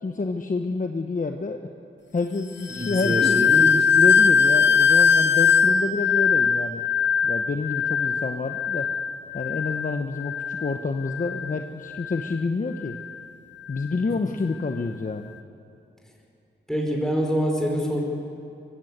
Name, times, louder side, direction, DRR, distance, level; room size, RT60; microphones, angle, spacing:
voice 1, 0.0-1.7 2.1-3.5 3.9-6.8 7.2-8.9 9.3-13.0 13.7-15.3, left 3 dB, 40° left, 5 dB, 1.1 m, -28 dB
sound 1, 2.6-11.6 11.9-12.3 12.9-13.1, left 6 dB, 65° left, 1.2 m, -21 dB
voice 2, 2.7-3.8 14.1-14.2 16.7-18.0, equal, ahead, -1 dB, 4.8 m, -25 dB
22.5 x 16.0 x 8.2 m, 2.8 s
cardioid pair, 75°, 20 cm